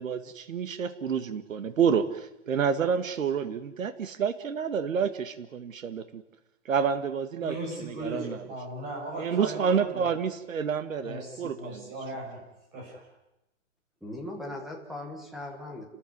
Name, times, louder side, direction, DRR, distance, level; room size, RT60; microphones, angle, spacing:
voice 1, 0.0-6.2 6.7-7.5 7.8-8.4 9.2-11.9, right 7 dB, 90° right, 10 dB, 2.0 m, -29 dB
voice 2, 7.4-10.1 11.0-12.4 12.7-13.0, right 2 dB, 20° right, -1 dB, 7.1 m, -37 dB
voice 3, 14.0-15.8, left 1 dB, ahead, 1 dB, 1.2 m, -39 dB
29.5 x 14.5 x 9.5 m, 0.91 s
hypercardioid pair, 180°, 38 cm